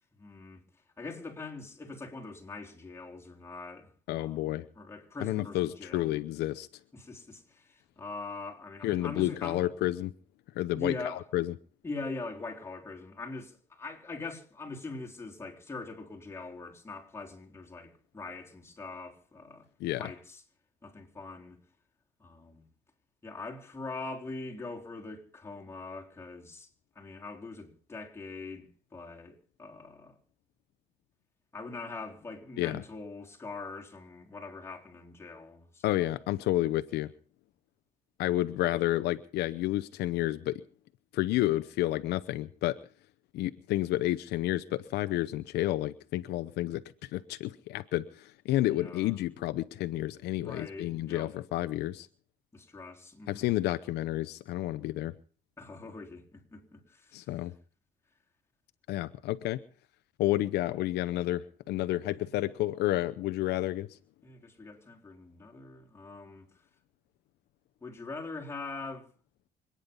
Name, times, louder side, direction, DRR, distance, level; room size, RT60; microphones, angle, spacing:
voice 1, 0.2-0.6 1.0-6.2 6.9-9.6 10.7-11.3 11.8-19.7 20.0-20.4 20.8-21.6 22.2-22.6 23.2-26.7 27.0-30.2 31.5-35.9 48.7-49.2 50.4-51.3 52.5-53.5 55.6-57.3 62.1-62.4 64.2-66.5 67.8-69.1, left 3 dB, 15° left, 3.9 m, -42 dB
voice 2, 4.1-4.6 5.2-6.7 8.8-10.1 10.6-11.5 19.8-20.1 32.6-32.8 35.8-37.1 38.2-40.6 41.1-42.8 43.3-52.1 53.3-55.1 57.1-57.5 58.9-59.6 60.2-64.0, left 15 dB, 80° left, 0.8 m, -30 dB
26.0 x 9.8 x 5.4 m
cardioid pair, 110°, 17 cm